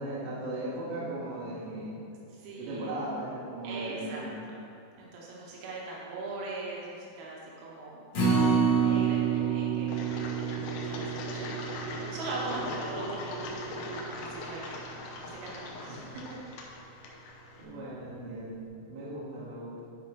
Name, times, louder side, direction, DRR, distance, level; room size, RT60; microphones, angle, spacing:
voice 1, 0.0-2.0 2.6-4.3 15.9-16.1 17.6-19.9, right 1 dB, 60° right, -8 dB, 3.2 m, -37 dB
voice 2, 2.3-3.0 3.6-4.2 5.0-8.0 8.7-10.0 10.5-11.5 12.1-14.8 15.2-16.0, right 3 dB, 85° right, -4 dB, 3.5 m, -40 dB
Acoustic guitar, 8.1-14.4 14.8-14.9 15.4-15.5, right 6 dB, 60° left, 1.6 m, -29 dB
Engine, 9.9-17.6, left 1 dB, 85° left, 3.2 m, -39 dB
12.0 x 4.9 x 3.1 m, 2.5 s
omnidirectional pair, 5.7 m